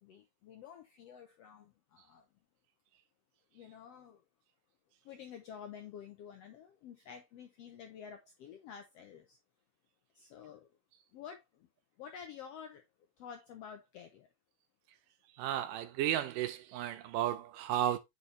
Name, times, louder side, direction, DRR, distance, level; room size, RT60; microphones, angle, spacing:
voice 1, 0.0-2.3 3.5-4.2 5.0-9.4 10.1-10.7 11.1-11.7 12.0-12.8 13.2-14.3, left 8 dB, 80° left, 1.4 m, -50 dB
voice 2, 15.4-18.0, right 11 dB, 90° right, 2.4 m, -33 dB
8.2 x 4.3 x 3.2 m
omnidirectional pair, 3.8 m